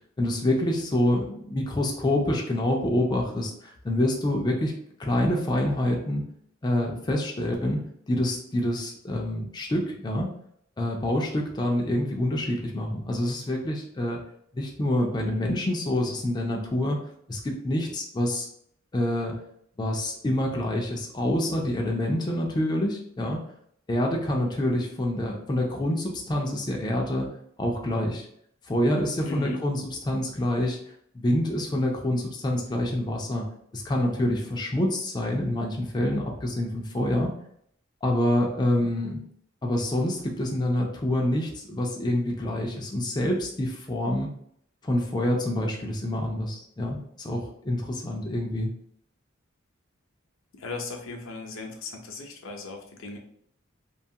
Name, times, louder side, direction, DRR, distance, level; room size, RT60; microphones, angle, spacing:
voice 1, 0.2-4.7 5.0-6.2 6.6-10.3 10.8-14.2 14.5-17.0 17.3-18.5 18.9-19.3 19.8-23.4 23.9-28.3 28.7-30.8 31.1-33.4 33.7-37.3 38.0-39.2 39.6-44.3 44.8-48.7, left 1 dB, 20° left, 0 dB, 0.4 m, -27 dB
voice 2, 29.2-29.6 50.5-53.2, left 3 dB, 75° left, 2 dB, 0.6 m, -36 dB
2.8 x 2.3 x 2.7 m, 0.67 s
head